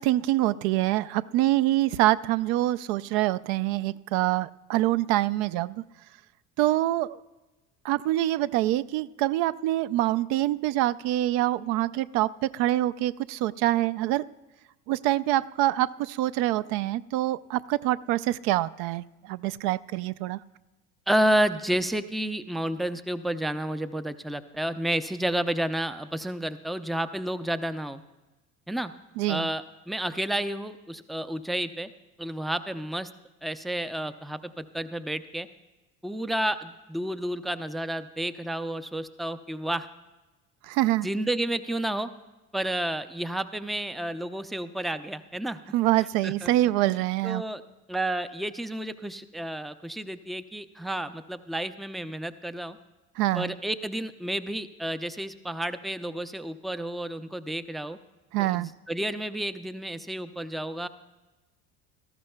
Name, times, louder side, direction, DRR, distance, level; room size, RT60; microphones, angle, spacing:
voice 1, 0.0-5.8 6.6-7.2 7.8-14.2 14.9-20.4 29.2-29.5 40.7-41.1 45.7-47.4 53.2-53.5 58.3-58.7, right 15 dB, 60° right, 17 dB, 0.5 m, -25 dB
voice 2, 21.1-28.0 28.7-28.9 29.3-31.9 32.2-33.1 33.4-35.5 36.0-39.9 41.0-42.1 42.5-45.6 46.2-46.5 47.2-47.6 47.9-52.8 53.3-58.0 58.4-60.9, right 1 dB, ahead, 11 dB, 0.4 m, -30 dB
18.0 x 14.0 x 2.2 m, 1.1 s
hypercardioid pair, 70°, 42 cm